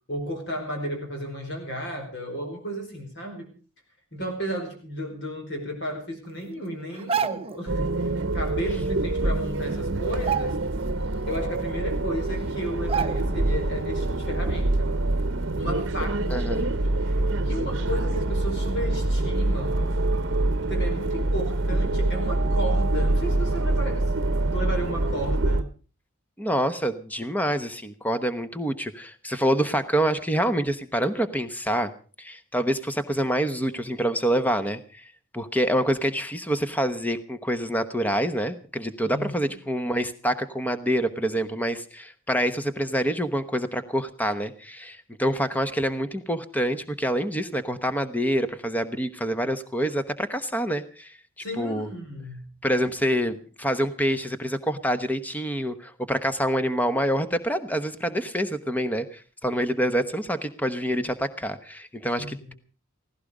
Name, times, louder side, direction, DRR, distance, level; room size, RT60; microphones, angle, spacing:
voice 1, 0.1-3.5 4.1-10.6 11.3-14.9 15.5-19.8 20.7-24.1 24.4-25.7 39.0-39.5 51.4-52.5 62.2-62.6, right 1 dB, 55° left, 3 dB, 4.8 m, -34 dB
sound 1, 6.9-7.6 9.1-9.2 9.5-9.7 10.1-11.0 11.4-11.5 12.2-12.3 12.9-13.5 13.9-14.0, right 7 dB, 25° right, 0.7 m, -29 dB
sound 2, 7.7-25.6, right 2 dB, 55° right, 0.9 m, -25 dB
voice 2, 16.3-16.7 26.4-31.9 32.2-51.2 51.6-51.9 52.6-62.5, equal, 10° left, 10 dB, 1.0 m, -26 dB
17.5 x 16.5 x 5.0 m, 0.39 s
head